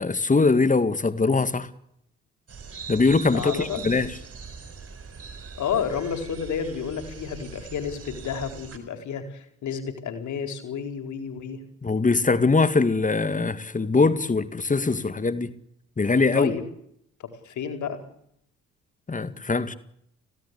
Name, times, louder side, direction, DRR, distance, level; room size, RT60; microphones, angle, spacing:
voice 1, 0.0-1.7 2.9-4.1 11.8-15.5 16.0-16.5 19.1-19.7, left 3 dB, 20° left, 2.1 m, -22 dB
sound 1, 2.5-8.8, right 6 dB, 40° right, 6.0 m, -41 dB
voice 2, 3.3-3.8 5.6-11.6 16.3-16.6 17.2-18.0, left 7 dB, 50° left, 4.5 m, -31 dB
28.5 x 17.0 x 8.4 m
figure-of-eight pair, 45°, 37 cm